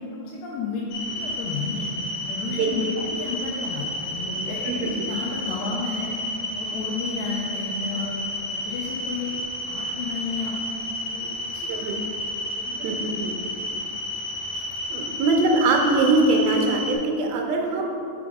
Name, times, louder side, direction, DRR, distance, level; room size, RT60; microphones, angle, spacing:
voice 1, 0.0-1.9 2.3-2.9 3.2-6.2 6.6-8.2 8.5-9.4 9.6-11.9 12.7-13.0, left 4 dB, 90° left, -4 dB, 2.5 m, -32 dB
sound 1, 0.9-17.0, left 1 dB, 70° left, 2.3 m, -31 dB
voice 2, 4.7-5.1 11.7-12.0 12.8-13.4 14.5-14.7 14.9-17.9, right 2 dB, 90° right, 2 dB, 2.5 m, -22 dB
6.1 x 3.6 x 4.7 m, 2.7 s
omnidirectional pair, 4.1 m